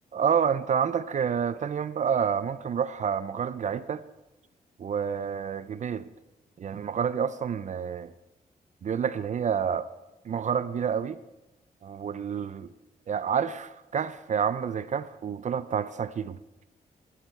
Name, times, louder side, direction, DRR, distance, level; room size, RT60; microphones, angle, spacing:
voice 1, 0.1-4.0 4.8-6.1 6.6-8.1 8.8-9.9 10.2-11.2 11.8-12.7 13.1-16.4, right 7 dB, 50° right, 0.5 m, -28 dB
16.0 x 10.0 x 4.5 m
cardioid pair, 90°, 16 cm